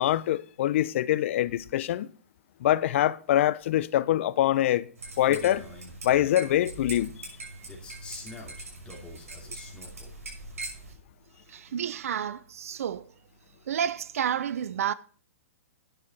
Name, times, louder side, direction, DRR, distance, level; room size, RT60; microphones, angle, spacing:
voice 1, 0.0-2.1 2.6-4.9 5.2-5.7 6.0-7.3, left 13 dB, 55° left, 0.6 m, -24 dB
sound 1, 5.0-10.9, right 2 dB, 90° right, 5.9 m, -42 dB
Male speech man speaking, 5.1-6.5 7.7-10.1, left 2 dB, 10° left, 2.7 m, -45 dB
voice 2, 11.5-13.1 13.7-14.9, right 9 dB, 75° right, 0.6 m, -30 dB
9.9 x 6.5 x 5.3 m
hypercardioid pair, 135°, 8 cm